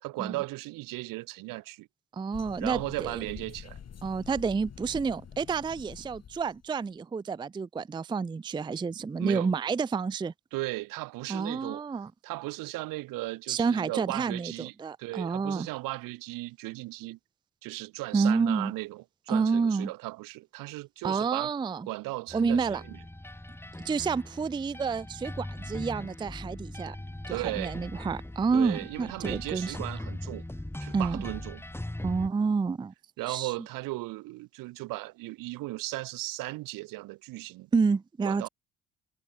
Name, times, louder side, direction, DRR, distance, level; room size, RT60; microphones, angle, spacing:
voice 1, 0.0-1.9 2.6-3.8 9.2-9.5 10.5-11.8 12.2-14.7 15.0-17.2 17.6-21.5 21.9-23.0 27.3-27.7 28.5-30.4 30.8-31.6 33.2-37.7 38.2-38.5, right 20 dB, 70° right, 1.6 m, -36 dB
voice 2, 2.1-3.2 4.0-10.3 11.3-12.1 13.5-15.7 18.1-18.7 19.3-19.9 21.0-21.9 22.3-22.8 23.8-27.0 27.3-29.8 30.9-31.2 32.0-32.9 33.3-33.5 37.7-38.5, right 5 dB, 15° right, 0.4 m, -29 dB
sound 1, 2.3-6.6, left 8 dB, 45° left, 3.9 m, -46 dB
sound 2, 22.3-32.3, left 1 dB, 5° left, 2.0 m, -40 dB
hypercardioid pair, 55°, 34 cm